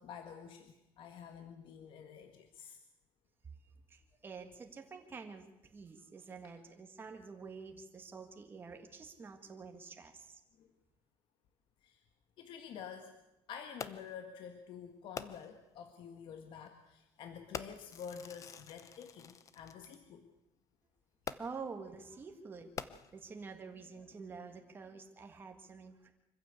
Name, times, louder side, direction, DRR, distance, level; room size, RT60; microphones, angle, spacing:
voice 1, 0.0-2.8 10.6-10.7 11.8-12.0 12.4-13.1 13.5-20.3, left 7 dB, 55° left, 6 dB, 1.7 m, -49 dB
voice 2, 3.9-5.5 5.7-10.4 21.4-22.7 23.1-26.1, right 5 dB, 20° right, 4 dB, 1.8 m, -48 dB
Fireworks, 13.8-14.2 15.2-15.7 16.5-16.7 17.5-20.0 21.3-21.8 22.6-23.4 24.1-24.2, left 7 dB, 35° left, 0.8 m, -46 dB
25.0 x 15.0 x 8.3 m, 0.96 s
cardioid pair, 175°, 10 cm